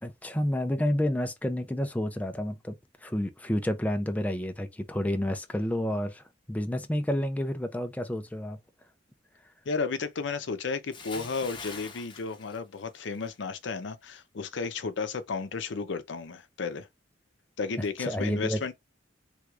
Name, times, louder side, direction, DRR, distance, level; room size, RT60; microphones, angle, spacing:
voice 1, 0.0-2.8 3.0-8.6 18.0-18.6, left 1 dB, 10° left, 0.4 m, -30 dB
voice 2, 9.7-16.9 17.6-18.7, left 4 dB, 75° left, 0.6 m, -33 dB
Bathtub (filling or washing) / Splash splatter, 10.9-13.3 13.7-13.9, left 4 dB, 25° left, 0.8 m, -44 dB
3.5 x 3.0 x 2.4 m
head